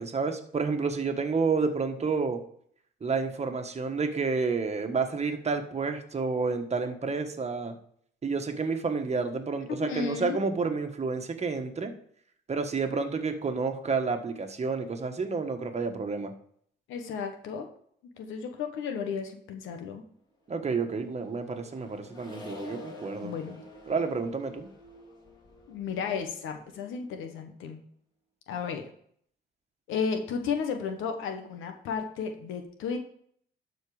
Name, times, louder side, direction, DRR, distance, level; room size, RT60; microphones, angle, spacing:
voice 1, 0.0-2.4 3.0-7.7 8.2-11.9 12.5-16.3 20.5-23.3 23.9-24.7, right 4 dB, 35° right, 5 dB, 1.4 m, -30 dB
voice 2, 9.7-10.4 16.9-17.7 18.2-20.0 23.2-23.6 25.7-27.8 28.5-28.9 29.9-33.0, left 6 dB, 90° left, 5 dB, 1.2 m, -33 dB
Accelerating revving vroom, 20.7-27.4, left 1 dB, 25° left, 3.8 m, -48 dB
12.0 x 4.6 x 4.9 m, 0.63 s
cardioid pair, 90°, 20 cm